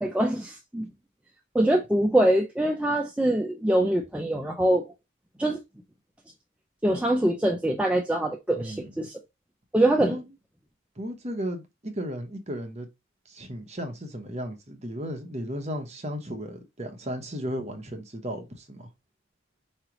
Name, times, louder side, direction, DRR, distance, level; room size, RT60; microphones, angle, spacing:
voice 1, 0.0-0.9 1.5-4.9 5.4-5.6 6.8-9.1 9.7-10.2, right 1 dB, 5° right, 0.4 m, -24 dB
voice 2, 8.6-8.9 10.0-10.2 11.0-12.9 13.3-18.9, equal, 30° right, 0.9 m, -35 dB
4.8 x 3.2 x 2.9 m
head